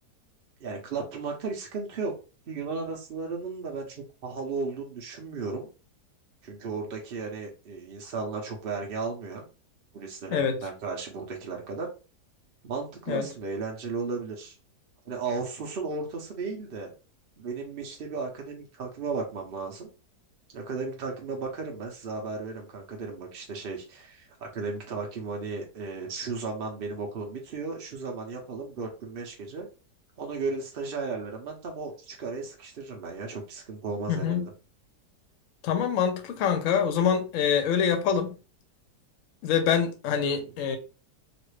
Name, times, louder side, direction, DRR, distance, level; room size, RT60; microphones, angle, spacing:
voice 1, 0.6-2.1 2.5-5.7 6.4-9.5 9.9-11.9 12.6-14.5 15.1-16.9 17.4-19.9 20.5-29.7 30.2-34.5, right 4 dB, 65° right, 0.5 m, -35 dB
voice 2, 34.1-34.5 35.6-38.4 39.4-40.8, left 7 dB, 60° left, 0.9 m, -25 dB
3.0 x 2.5 x 3.1 m
omnidirectional pair, 1.8 m